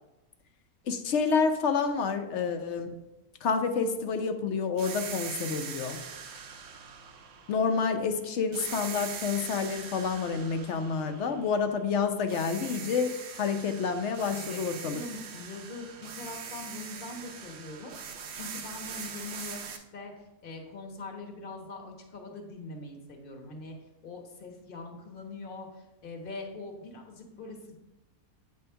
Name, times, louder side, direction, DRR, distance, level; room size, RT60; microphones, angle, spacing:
voice 1, 0.9-3.0 3.4-6.0 7.5-15.0, left 5 dB, 60° left, 7 dB, 0.9 m, -29 dB
sound 1, 4.8-8.1 8.5-11.9 12.3-19.8, right 6 dB, 65° right, 1.0 m, -42 dB
voice 2, 14.1-17.9 18.3-20.1 20.4-23.8 24.0-27.8, left 3 dB, 40° left, 2 dB, 1.3 m, -42 dB
8.9 x 3.5 x 5.6 m, 0.97 s
omnidirectional pair, 1.5 m